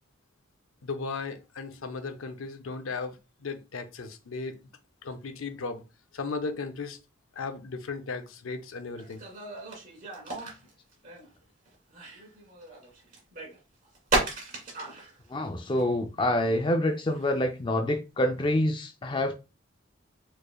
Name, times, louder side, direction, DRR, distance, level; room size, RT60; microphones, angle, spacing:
voice 1, 0.8-4.6 5.0-5.8 6.1-7.0 7.3-9.2, left 4 dB, 85° left, 0.6 m, -36 dB
sound 1, 9.0-11.3 11.7-15.1 15.4-15.5 15.8-15.9 16.2-17.4 18.4-18.5, right 2 dB, 40° right, 1.7 m, -35 dB
voice 2, 15.3-19.3, left 1 dB, 25° left, 0.4 m, -26 dB
4.5 x 3.1 x 2.3 m
head